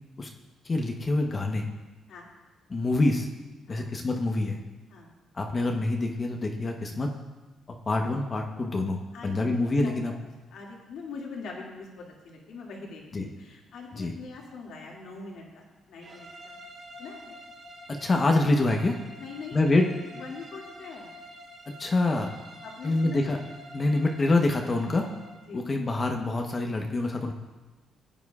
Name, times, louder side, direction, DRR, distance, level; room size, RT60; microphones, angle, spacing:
voice 1, 0.6-1.6 2.7-3.3 3.7-4.6 5.3-7.1 7.9-10.1 13.1-13.3 13.9-14.2 18.0-18.9 19.5-19.9 21.8-22.3 22.8-23.4 23.7-25.1 25.5-27.3, left 2 dB, 35° left, 3 dB, 0.9 m, -26 dB
voice 2, 9.1-10.2 10.5-16.5 17.0-17.3 19.2-19.7 20.1-21.1 22.6-23.4 23.8-23.9 25.5-25.7, left 4 dB, 75° left, -2 dB, 2.2 m, -43 dB
sound 1, 16.0-25.5, equal, 55° right, 2.1 m, -47 dB
16.0 x 9.0 x 2.4 m, 1.2 s
cardioid pair, 90°, 0 cm